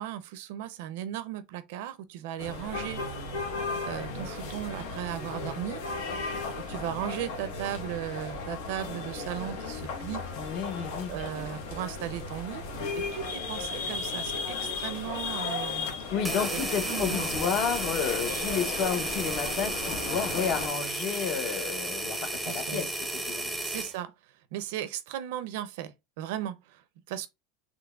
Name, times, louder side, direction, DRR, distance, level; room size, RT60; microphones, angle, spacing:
voice 1, 0.0-3.0 3.8-5.8 6.5-10.2 11.1-12.6 12.9-15.9 16.9-17.2 22.5-22.8 23.6-24.1 24.5-27.3, right 11 dB, 75° right, 0.5 m, -36 dB
sound 1, 2.4-20.7, left 3 dB, 85° left, 1.1 m, -35 dB
voice 2, 10.3-11.3 12.8-12.9 16.1-23.6, left 7 dB, 45° left, 0.7 m, -31 dB
sound 2, 16.2-23.9, right 1 dB, 5° right, 0.6 m, -33 dB
3.8 x 3.0 x 2.3 m
supercardioid pair, 145°, 0 cm